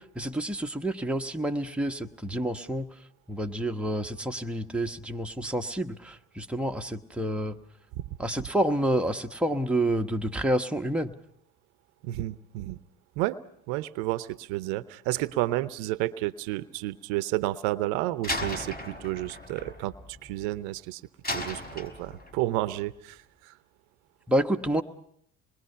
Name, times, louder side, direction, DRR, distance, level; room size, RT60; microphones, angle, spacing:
voice 1, 0.0-2.9 3.3-7.6 8.2-11.1 24.3-24.8, right 1 dB, 5° right, 3 dB, 1.1 m, -28 dB
voice 2, 12.0-12.8 13.2-13.4 13.7-21.0 21.3-23.6, right 16 dB, 70° right, 16 dB, 0.8 m, -31 dB
Slam, 18.2-20.7 21.2-22.5, left 1 dB, 25° left, 4.9 m, -36 dB
26.0 x 21.5 x 5.7 m, 0.70 s
hypercardioid pair, 65°, 39 cm